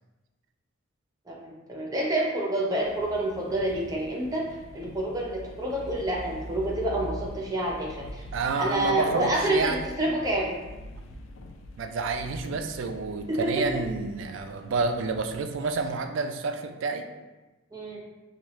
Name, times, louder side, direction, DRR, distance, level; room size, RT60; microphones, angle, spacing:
voice 1, 1.3-4.5 4.7-8.2 8.6-10.5 13.3-13.8 17.7-18.0, right 1 dB, 20° right, -3 dB, 0.6 m, -28 dB
sound 1, 2.8-15.9, equal, 75° left, 0.4 m, -43 dB
voice 2, 8.3-9.9 11.8-17.1, right 4 dB, 70° right, 7 dB, 0.3 m, -29 dB
4.5 x 2.4 x 3.0 m, 1.1 s
head